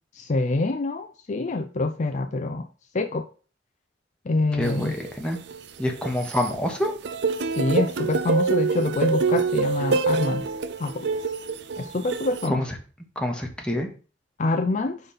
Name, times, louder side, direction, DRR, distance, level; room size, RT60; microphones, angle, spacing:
voice 1, 0.2-2.6 2.9-3.3 4.3-4.9 7.6-10.4 10.8-11.1 11.8-12.6 14.4-15.0, left 2 dB, 45° left, 8 dB, 0.4 m, -26 dB
voice 2, 4.5-5.4 5.8-6.9 12.5-12.8 13.1-13.9, left 1 dB, 5° left, 1 dB, 1.2 m, -27 dB
sound 1, 4.6-6.5 6.8-12.5, right 4 dB, 65° right, 0.5 m, -26 dB
5.2 x 4.1 x 5.6 m, 0.37 s
head